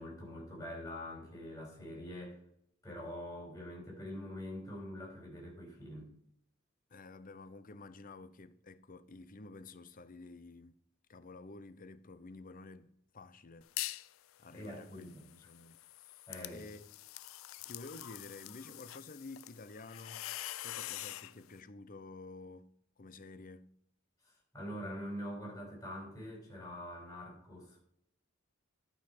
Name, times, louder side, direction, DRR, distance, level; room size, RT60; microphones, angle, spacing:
voice 1, 0.0-2.4 2.8-6.1 14.5-15.2 16.3-16.6 24.5-27.8, equal, 15° left, 4.7 m, -44 dB
voice 2, 6.9-10.8 11.1-12.9 13.1-13.7 14.4-15.8 16.0-16.2 16.5-16.9 17.6-20.2 20.6-23.7, left 3 dB, 45° left, 0.7 m, -51 dB
sound 1, 13.6-14.1 14.5-21.3, left 15 dB, 85° left, 0.4 m, -45 dB
11.5 x 5.6 x 5.9 m
head